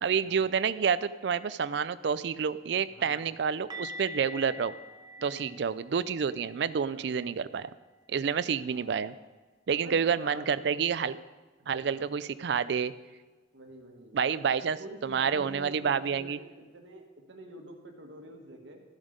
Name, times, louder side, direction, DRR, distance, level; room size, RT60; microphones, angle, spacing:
voice 1, 0.0-4.7 5.2-7.7 8.1-9.1 9.7-11.2 11.7-12.9 14.1-16.4, right 6 dB, 65° right, 16 dB, 0.4 m, -29 dB
voice 2, 2.9-3.2 5.2-5.6 6.9-7.1 8.7-9.0 9.7-10.8 11.6-12.1 13.5-14.2 14.8-18.8, right 1 dB, 80° right, 2 dB, 1.7 m, -47 dB
sound 1, 3.7-9.5 9.7-10.0 10.3-10.5 13.7-13.8, equal, 20° right, 0.7 m, -47 dB
13.5 x 7.3 x 5.1 m, 1.3 s
head